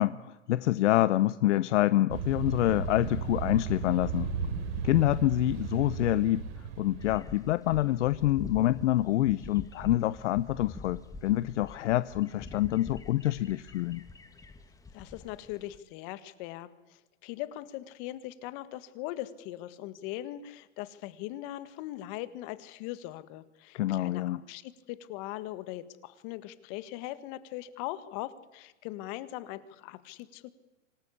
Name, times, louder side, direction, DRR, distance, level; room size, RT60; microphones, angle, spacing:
voice 1, 0.0-4.3 4.8-6.4 6.8-14.0 23.7-24.4, left 15 dB, 70° left, 16 dB, 0.8 m, -26 dB
sound 1, 2.1-7.4, right 6 dB, 65° right, 4.2 m, -35 dB
sound 2, 7.0-15.8, left 3 dB, 10° left, 1.5 m, -45 dB
voice 2, 14.9-30.5, left 15 dB, 40° left, 13 dB, 1.8 m, -40 dB
26.0 x 19.0 x 8.5 m, 1.1 s
supercardioid pair, 145°, 38 cm